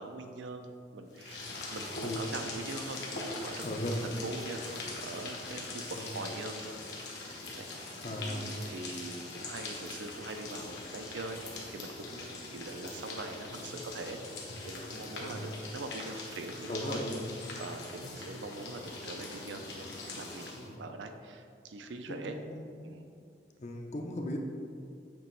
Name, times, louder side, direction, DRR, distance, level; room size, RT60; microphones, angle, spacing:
voice 1, 0.0-3.7 3.9-6.8 7.2-7.7 8.1-11.4 11.7-17.0 17.6-20.5 20.8-22.4 22.8-23.1, right 2 dB, 85° right, 6 dB, 0.5 m, -43 dB
sound 1, 1.1-20.7, left 3 dB, 70° left, 1.1 m, -42 dB
voice 2, 3.6-4.2 5.9-6.2 8.0-8.6 15.2-15.5 16.7-17.3 20.6-20.9 22.1-22.8 23.6-24.4, left 1 dB, 40° left, 2 dB, 0.6 m, -37 dB
7.4 x 3.1 x 4.5 m, 2.3 s
head